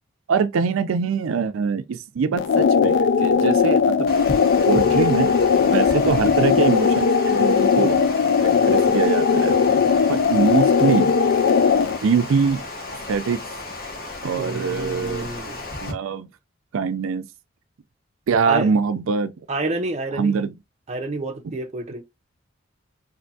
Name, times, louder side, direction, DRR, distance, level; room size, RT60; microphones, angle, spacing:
voice 1, 0.3-4.1 4.7-5.3 5.6-8.0 8.4-9.6 10.1-11.1 12.0-12.6 12.9-13.4 14.2-15.3 15.8-16.3 16.7-17.3 18.3-19.3 20.2-20.5, right 5 dB, 85° right, 0.4 m, -23 dB
sound 1, 2.4-12.0, left 6 dB, 60° left, 0.3 m, -18 dB
Water, 4.1-15.9, left 2 dB, 45° left, 1.3 m, -34 dB
voice 2, 5.9-6.4 8.4-8.9 14.4-15.6 18.5-18.7 19.5-20.3 20.9-22.0, right 2 dB, 30° right, 0.5 m, -29 dB
4.3 x 2.7 x 2.6 m
head